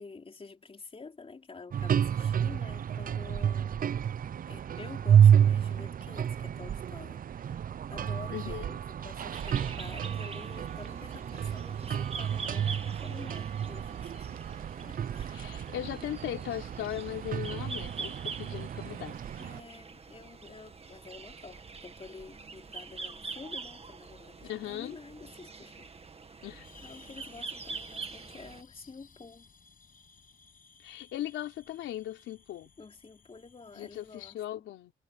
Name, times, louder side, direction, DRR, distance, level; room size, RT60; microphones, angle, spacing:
voice 1, 0.0-4.0 4.5-14.4 14.8-15.4 19.4-25.9 26.3-29.5 32.8-34.7, left 4 dB, 30° left, 3.9 m, -49 dB
sound 1, 1.7-19.6, right 9 dB, 45° right, 0.6 m, -29 dB
voice 2, 8.3-8.6 15.3-19.2 24.4-25.0 26.4-26.7 30.8-32.7 33.7-34.9, left 13 dB, 85° left, 4.0 m, -38 dB
sound 2, 9.3-28.6, right 4 dB, 30° right, 2.0 m, -44 dB
sound 3, 26.6-34.4, left 5 dB, 45° left, 7.7 m, -58 dB
cardioid pair, 90°, 20 cm